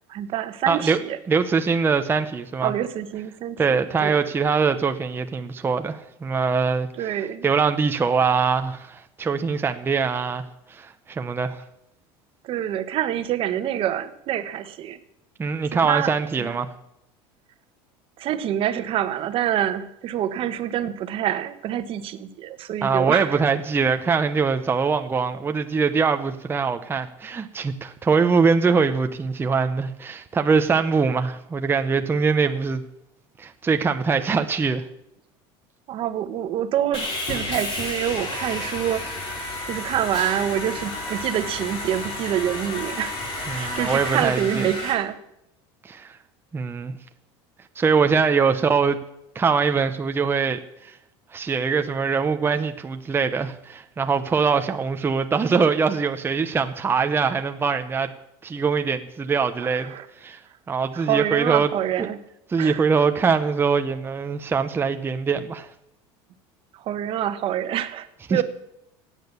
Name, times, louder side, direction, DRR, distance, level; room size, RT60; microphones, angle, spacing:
voice 1, 0.1-1.2 2.6-4.2 6.9-7.5 12.4-15.0 15.7-16.6 18.2-23.5 35.9-39.1 39.7-45.2 59.6-60.0 60.9-62.2 62.6-62.9 66.7-68.4, right 11 dB, 50° right, 11 dB, 1.3 m, -27 dB
voice 2, 0.7-1.0 1.3-2.7 3.6-7.2 7.4-10.4 10.7-11.6 15.4-16.7 22.8-32.8 33.4-34.8 43.5-44.7 45.8-46.2 46.5-47.0 47.8-49.0 49.3-51.0 51.3-58.1 58.4-60.4 60.7-61.7 62.0-62.1 62.5-65.7 68.3-68.4, right 5 dB, 20° right, 7 dB, 0.9 m, -23 dB
Sawing, 36.9-44.9, left 2 dB, 45° left, 5.4 m, -31 dB
16.5 x 9.0 x 6.9 m, 0.83 s
supercardioid pair, 120°, 12 cm